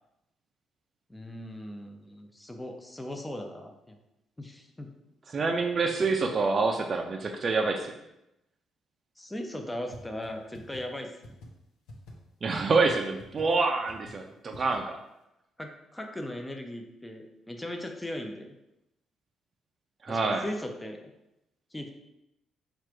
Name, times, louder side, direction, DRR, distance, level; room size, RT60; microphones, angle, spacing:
voice 1, 1.1-4.0 4.4-4.9 9.2-11.2 15.6-18.6 20.1-21.1 21.7-21.9, left 1 dB, 10° left, 3 dB, 0.6 m, -38 dB
voice 2, 5.3-7.9 12.4-15.0 20.0-20.4, right 3 dB, 40° right, 2 dB, 0.4 m, -27 dB
sound 1, 9.9-10.0 10.2-10.3 10.5-10.8 11.2-11.5 11.9-12.1 12.6-12.7 12.9-13.0 13.2-13.4 13.9-14.1 14.5-14.8, left 2 dB, 90° left, 0.9 m, -45 dB
4.7 x 2.5 x 4.5 m, 0.87 s
cardioid pair, 90°, 0 cm